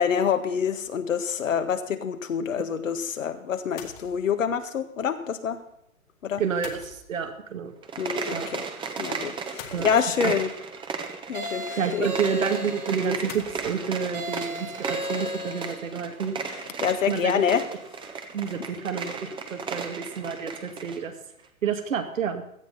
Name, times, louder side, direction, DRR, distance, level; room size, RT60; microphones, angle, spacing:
voice 1, 0.0-5.6 6.2-6.4 8.0-8.7 9.0-10.5 11.3-12.1 16.8-17.6, left 7 dB, 65° left, 8 dB, 1.8 m, -26 dB
sound 1, 0.8-1.1 3.8-4.4 6.6-7.6 9.6-10.5 13.3-13.7, left 8 dB, 30° left, 2.0 m, -44 dB
voice 2, 6.4-7.7 8.3-8.5 9.7-9.9 10.2-10.3 11.8-16.5 17.1-17.4 18.3-21.1 21.6-22.4, right 6 dB, 65° right, 5 dB, 2.4 m, -29 dB
sound 2, 7.8-21.0, right 5 dB, 10° right, 1.2 m, -35 dB
sound 3, 11.3-13.1 14.1-15.9, equal, 85° right, 4.6 m, -35 dB
17.0 x 12.5 x 4.2 m, 0.76 s
figure-of-eight pair, 120°, 42 cm